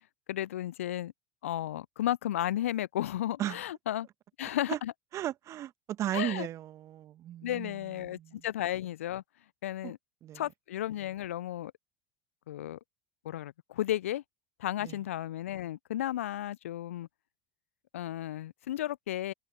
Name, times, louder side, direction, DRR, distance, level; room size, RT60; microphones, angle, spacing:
voice 1, 0.3-1.1 1.4-4.1 4.4-4.9 6.1-6.5 7.4-9.2 9.6-10.0 10.3-11.7 12.5-12.8 13.2-14.2 14.6-17.1 17.9-19.3, left 13 dB, 70° left, 0.6 m, -33 dB
voice 2, 5.1-7.8 8.0-8.4 9.8-9.9 10.2-10.4 14.8-15.0, right 12 dB, 40° right, 1.7 m, -36 dB
figure-of-eight pair, 75°, 7 cm